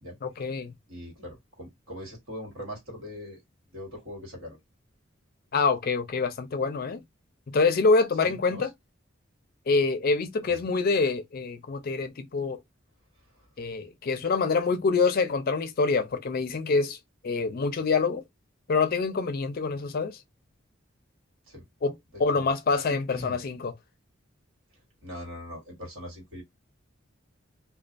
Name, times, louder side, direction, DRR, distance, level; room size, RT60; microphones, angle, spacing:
voice 1, 0.2-0.7 5.5-7.0 7.5-8.7 9.7-12.6 13.6-17.0 17.2-18.2 18.7-20.2 21.8-23.7, left 4 dB, 45° left, 0.4 m, -26 dB
voice 2, 0.9-3.4 3.7-4.6 8.2-8.7 10.5-10.6 13.6-13.7 21.5-21.6 22.3-23.4 25.0-26.4, left 1 dB, 80° right, 1.4 m, -41 dB
2.3 x 2.3 x 2.4 m
head